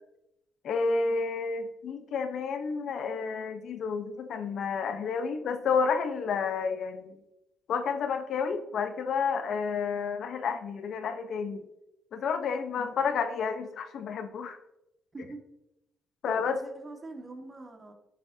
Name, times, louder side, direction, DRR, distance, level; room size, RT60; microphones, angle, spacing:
voice 1, 0.6-7.2 7.7-11.7 12.1-14.6 16.2-16.6, left 5 dB, 70° left, 8 dB, 1.0 m, -30 dB
voice 2, 16.2-17.9, right 2 dB, 30° right, 3 dB, 1.9 m, -43 dB
11.5 x 8.7 x 2.9 m, 0.88 s
cardioid pair, 90°, 0 cm